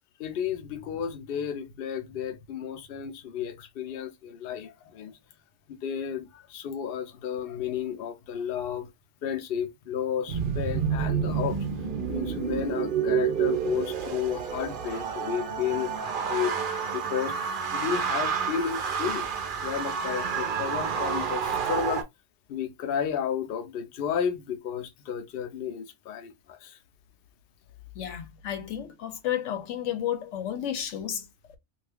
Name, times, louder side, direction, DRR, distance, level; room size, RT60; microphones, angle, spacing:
voice 1, 0.2-5.1 5.7-8.9 9.2-11.7 12.1-15.9 16.3-16.6 16.9-17.4 17.7-19.3 19.6-22.1 22.5-26.8, left 8 dB, 60° left, 0.7 m, -32 dB
sound 1, 10.3-22.0, right 7 dB, 55° right, 0.7 m, -29 dB
voice 2, 27.9-31.6, left 10 dB, 90° left, 1.0 m, -32 dB
2.7 x 2.4 x 3.4 m
omnidirectional pair, 1.2 m